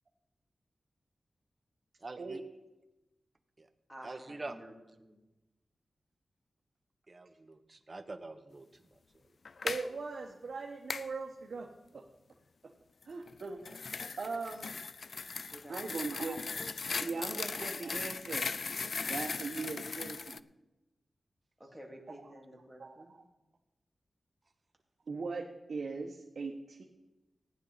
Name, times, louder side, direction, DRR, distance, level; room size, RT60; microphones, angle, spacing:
voice 1, 2.0-2.4 3.6-3.7 4.0-4.6 7.1-9.0 13.7-14.2 16.9-17.1, right 2 dB, 35° right, 8 dB, 0.9 m, -46 dB
voice 2, 3.9-5.2 15.5-16.3 16.9-17.5 21.6-23.1, right 1 dB, ahead, -1 dB, 2.4 m, -52 dB
sound 1, 9.5-9.9 10.9-11.1 13.3-20.4, left 4 dB, 60° left, 0.3 m, -38 dB
voice 3, 9.6-12.0 13.1-13.6 14.2-14.7 15.7-16.4 17.0-18.5 19.1-20.4 22.8-23.0 25.1-26.8, right 4 dB, 65° right, 1 dB, 1.1 m, -39 dB
15.5 x 9.8 x 4.0 m, 1.0 s
wide cardioid pair, 105°, 0 cm